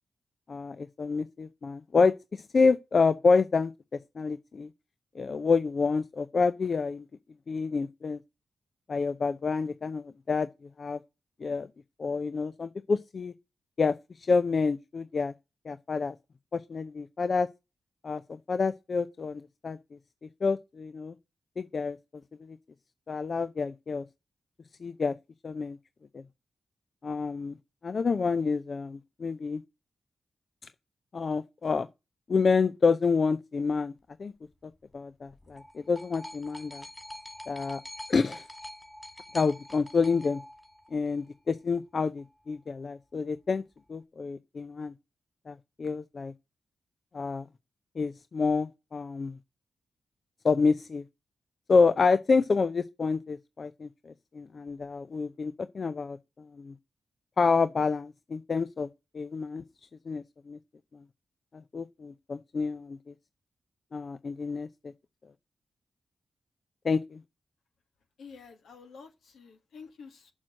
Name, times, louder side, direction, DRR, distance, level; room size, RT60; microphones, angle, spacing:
voice 1, 0.5-3.7 4.2-4.7 5.1-7.0 7.5-8.2 8.9-10.5 10.8-11.0 11.4-11.7 12.0-13.3 13.8-15.3 15.7-16.1 16.5-17.5 18.0-19.8 20.4-21.1 21.6-22.0 22.5-22.6 23.1-24.0 24.8-25.2 25.4-25.8 26.1-26.2 27.0-27.6 27.8-29.6 31.1-31.9 32.3-33.9 34.2-34.3 34.9-36.8 37.5-37.8 38.1-38.4 39.3-40.4 40.9-43.6 43.9-44.9 45.5-46.3 47.1-47.4 48.0-49.4 50.4-51.0 51.7-56.7 57.4-58.9 59.1-59.6 60.1-60.6 61.7-63.1 63.9-64.7 66.8-67.2, left 4 dB, 55° left, 0.5 m, -28 dB
sound 1, 35.3-41.3 42.2-42.3, left 1 dB, 10° left, 2.5 m, -45 dB
voice 2, 68.2-70.3, left 5 dB, 80° left, 1.6 m, -49 dB
7.3 x 6.4 x 7.5 m
supercardioid pair, 45°, 0 cm